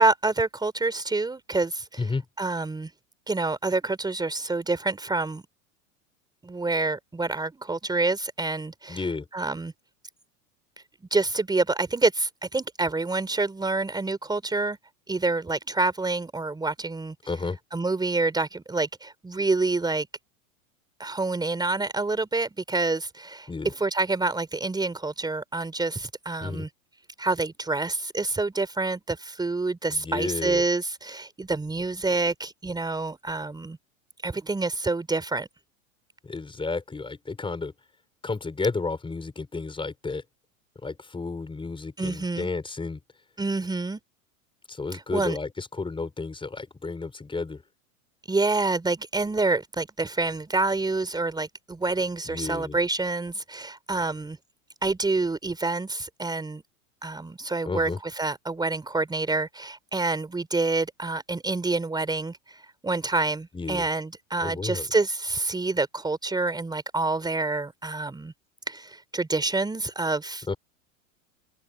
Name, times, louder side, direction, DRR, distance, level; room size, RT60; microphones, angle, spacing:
voice 1, 0.0-2.0 2.4-2.9 3.3-5.4 6.4-9.0 9.3-9.7 11.1-14.8 15.1-17.1 17.7-20.1 21.0-23.5 23.8-26.7 27.2-33.8 34.2-35.5 42.0-42.5 43.4-44.0 44.9-45.4 48.3-54.4 54.8-56.6 57.0-68.3 68.7-70.5, right 3 dB, 10° right, 4.4 m, -27 dB
voice 2, 8.9-9.3 17.3-17.6 23.5-23.7 26.4-26.7 29.9-30.6 36.2-37.7 38.2-40.2 40.8-43.0 44.7-47.6 52.2-52.8 57.7-58.0 63.5-63.9 64.4-64.9 70.5-70.6, left 3 dB, 10° left, 6.4 m, -32 dB
hypercardioid pair, 115°, 40 cm